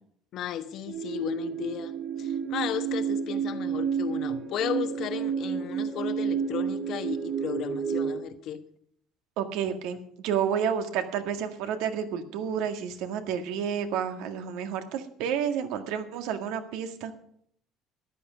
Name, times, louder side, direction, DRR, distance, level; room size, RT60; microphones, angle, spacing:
voice 1, 0.3-8.6, left 10 dB, 55° left, 1.2 m, -34 dB
sound 1, 0.9-8.2, right 7 dB, 55° right, 2.7 m, -30 dB
voice 2, 9.4-17.1, right 8 dB, 75° right, 1.9 m, -30 dB
14.0 x 11.0 x 5.2 m
cardioid pair, 130°, 0 cm